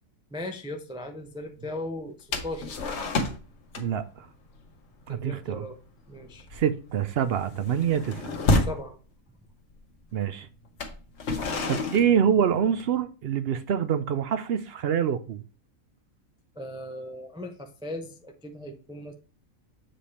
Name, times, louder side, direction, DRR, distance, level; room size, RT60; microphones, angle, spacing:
voice 1, 0.3-2.8 5.1-5.8 6.1-6.5 8.7-9.0 16.6-19.1, left 1 dB, 5° right, 0.5 m, -37 dB
sound 1, 2.3-3.5 3.7-4.0 4.3-4.6 5.0-5.2 5.5-5.8 6.2-8.9 9.7-9.8 10.6-13.0, left 2 dB, 60° left, 1.2 m, -29 dB
voice 2, 3.7-4.3 5.1-5.6 6.5-8.2 10.1-10.5 11.7-15.4, right 8 dB, 65° right, 0.6 m, -26 dB
7.7 x 3.4 x 4.2 m
omnidirectional pair, 1.4 m